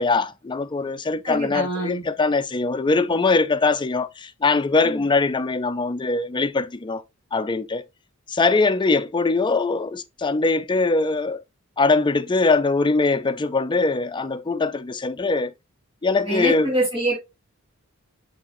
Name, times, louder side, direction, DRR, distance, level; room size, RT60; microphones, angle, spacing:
voice 1, 0.0-7.0 7.3-7.8 8.3-11.4 11.8-15.5 16.0-16.7, left 3 dB, 20° left, 0.5 m, -22 dB
voice 2, 1.2-2.0 4.8-5.0 16.2-17.1, right 1 dB, 25° right, 3.8 m, -25 dB
7.9 x 5.1 x 2.5 m
head